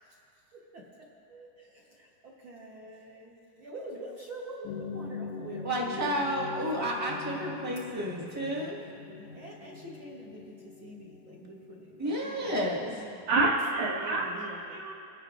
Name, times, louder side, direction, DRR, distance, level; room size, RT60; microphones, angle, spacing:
voice 1, 0.5-6.3 8.0-8.7 9.1-13.3 14.0-14.8, right 1 dB, 65° right, -4 dB, 1.3 m, -46 dB
sound 1, 4.6-12.8, left 4 dB, 75° left, 1.7 m, -43 dB
voice 2, 5.6-8.7 12.0-12.9, equal, 20° right, -5 dB, 0.4 m, -31 dB
voice 3, 13.3-14.9, right 3 dB, 80° right, -2 dB, 3.2 m, -28 dB
28.0 x 11.0 x 2.5 m, 2.6 s
omnidirectional pair, 4.0 m